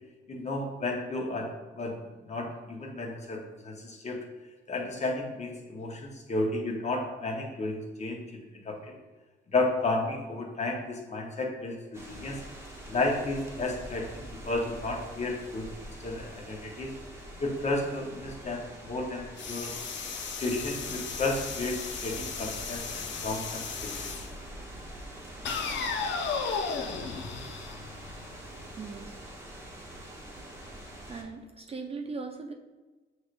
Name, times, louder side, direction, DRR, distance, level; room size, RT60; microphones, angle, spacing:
voice 1, 0.3-2.0 2.2-4.2 4.7-8.2 8.6-8.9 9.5-12.4 12.9-15.7 16.0-16.9 17.4-19.7 20.4-24.1, left 2 dB, 35° left, 0 dB, 1.0 m, -32 dB
sound 1, 11.9-31.2, right 1 dB, 15° right, 1.0 m, -45 dB
sound 2, 19.4-24.3 25.5-28.4, left 5 dB, 70° left, 0.6 m, -35 dB
voice 2, 28.8-29.2 31.1-32.5, right 4 dB, 30° right, 3 dB, 0.4 m, -39 dB
6.3 x 3.2 x 2.5 m, 1.2 s
cardioid pair, 90°, 20 cm